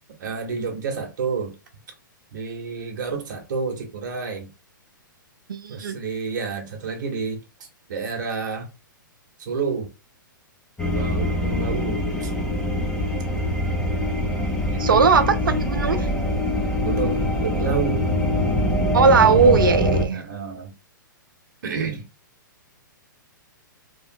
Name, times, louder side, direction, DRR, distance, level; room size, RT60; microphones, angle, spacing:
voice 1, 0.2-1.5 2.3-4.5 5.7-7.4 7.9-8.7 9.4-9.9 10.9-12.3 14.7-15.1 16.8-18.1 20.1-20.7 21.6-22.1, right 5 dB, 60° right, 1.1 m, -29 dB
voice 2, 5.5-6.0 14.8-16.1 18.9-20.2, right 5 dB, 75° right, 0.5 m, -18 dB
sound 1, 10.8-20.0, left 1 dB, 5° left, 0.7 m, -23 dB
3.0 x 2.4 x 2.6 m
hypercardioid pair, 120°, 11 cm